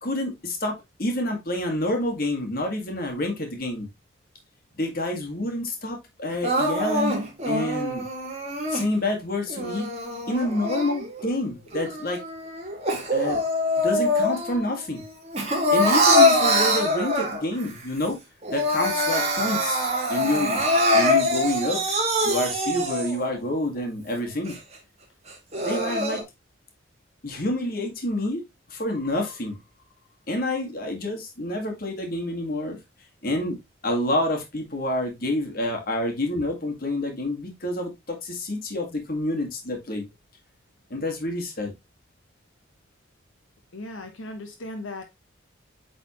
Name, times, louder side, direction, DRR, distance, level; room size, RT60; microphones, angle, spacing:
voice 1, 0.0-3.9 4.8-7.1 7.5-8.1 8.7-9.9 10.3-12.2 12.9-13.4 13.8-15.0 15.7-18.2 18.5-22.0 22.2-24.6 25.6-26.2 27.2-28.4 28.7-29.6 30.3-32.8 33.2-33.6 33.8-40.1 40.9-41.7, left 1 dB, 45° left, 1.8 m, -28 dB
Crying sobbing, 6.4-8.9 9.5-11.3 11.7-14.6 15.0-17.6 18.0-18.1 18.4-23.3 23.8-23.9 24.5-24.6 25.3-26.2, left 1 dB, 30° right, 1.9 m, -24 dB
voice 2, 43.7-45.0, left 2 dB, 80° left, 1.1 m, -37 dB
8.5 x 4.1 x 3.0 m
head